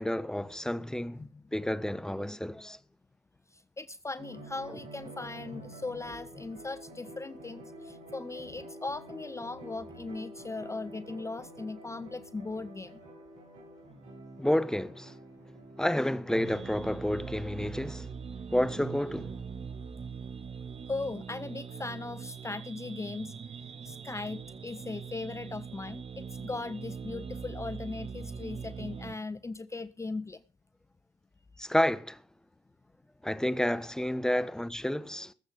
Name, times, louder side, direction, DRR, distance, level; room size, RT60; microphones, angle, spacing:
voice 1, 0.0-2.8 4.7-4.8 14.4-15.2 15.8-18.1 18.5-19.4 31.6-32.2 33.2-35.3, left 1 dB, 5° left, 1.1 m, -30 dB
voice 2, 3.5-13.0 20.9-30.4, left 3 dB, 20° left, 0.6 m, -39 dB
sound 1, 4.2-16.7, right 1 dB, 70° right, 8.0 m, -48 dB
sound 2, 16.3-29.1, right 6 dB, 45° right, 1.5 m, -42 dB
20.0 x 8.0 x 5.2 m
hypercardioid pair, 45°, 15 cm